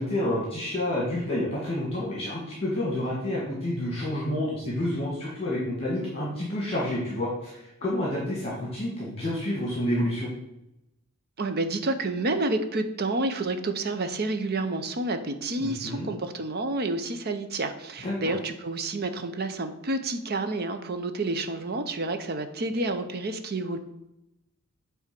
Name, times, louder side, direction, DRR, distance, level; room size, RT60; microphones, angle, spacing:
voice 1, 0.0-10.3 15.6-16.1 18.0-18.3, left 1 dB, 25° left, -4 dB, 1.7 m, -29 dB
voice 2, 11.4-23.8, right 2 dB, 45° right, 8 dB, 0.7 m, -29 dB
8.7 x 3.6 x 6.0 m, 0.89 s
head